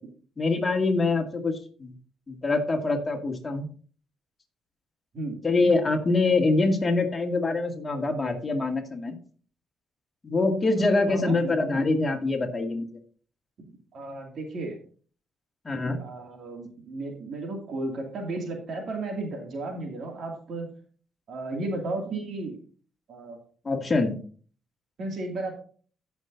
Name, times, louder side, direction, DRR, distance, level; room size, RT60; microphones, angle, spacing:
voice 1, 0.4-1.9 2.3-3.7 5.4-9.1 10.2-12.9 15.6-16.0 23.6-24.2, left 3 dB, 25° left, 2 dB, 2.2 m, -24 dB
voice 2, 11.1-11.8 13.9-14.8 16.0-20.7 21.3-22.6 23.1-23.4 25.0-25.5, right 2 dB, 60° right, 2 dB, 2.4 m, -34 dB
16.5 x 6.0 x 2.7 m, 0.41 s
cardioid pair, 90°, 0 cm